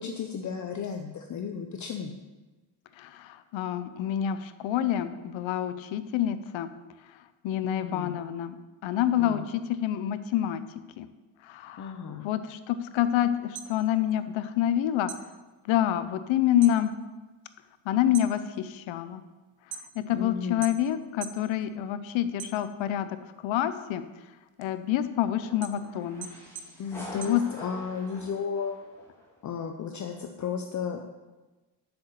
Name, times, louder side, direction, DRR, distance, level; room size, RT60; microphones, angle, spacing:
voice 1, 0.0-2.1 7.6-8.2 9.2-9.5 11.8-12.3 20.1-20.7 26.8-28.8 29.4-31.0, left 6 dB, 40° left, 4 dB, 0.7 m, -34 dB
voice 2, 3.0-6.7 7.4-8.6 8.8-10.6 11.0-11.1 11.4-11.9 12.2-15.1 15.7-16.9 17.9-19.2 20.0-23.1 23.4-24.0 24.6-26.3 27.1-27.4, left 11 dB, 85° left, 11 dB, 0.7 m, -27 dB
sound 1, 13.3-14.7 15.0-16.8 17.2-17.6 18.0-20.2 20.6-21.5 21.8-23.0 23.5-28.0, right 8 dB, 45° right, 0.8 m, -44 dB
sound 2, 25.3-29.4, equal, 5° left, 2.9 m, -46 dB
7.9 x 6.9 x 7.0 m, 1.2 s
cardioid pair, 160°, 45 cm